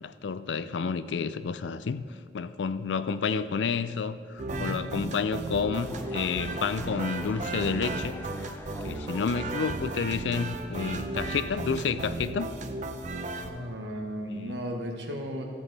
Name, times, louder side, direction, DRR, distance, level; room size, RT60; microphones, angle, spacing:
voice 1, 0.0-2.0 2.3-8.2 8.8-12.5 14.3-14.6, left 5 dB, 80° left, 13 dB, 0.4 m, -30 dB
sound 1, 4.4-13.5, right 2 dB, 45° right, 0.6 m, -35 dB
voice 2, 4.5-4.8 13.4-15.4, equal, 75° right, 2 dB, 1.4 m, -35 dB
sound 2, 5.8-10.6, left 1 dB, 10° left, 0.6 m, -45 dB
14.0 x 7.3 x 4.1 m, 2.3 s
head